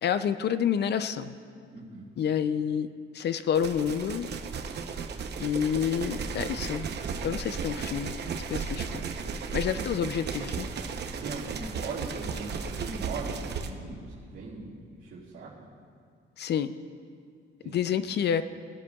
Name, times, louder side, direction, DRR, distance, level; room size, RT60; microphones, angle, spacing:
voice 1, 0.0-1.4 2.2-2.9 3.1-4.3 5.4-6.9 7.2-8.1 8.5-9.0 9.5-10.7 16.4-16.7 17.7-18.4, left 8 dB, 55° left, 12 dB, 0.5 m, -28 dB
voice 2, 1.7-2.1 9.7-10.1 11.2-15.5 17.6-18.0, right 3 dB, 70° right, -10 dB, 2.4 m, -40 dB
sound 1, 3.5-13.7, right 5 dB, 55° right, 0.8 m, -35 dB
18.5 x 12.0 x 2.4 m, 2.3 s
cardioid pair, 110°, 21 cm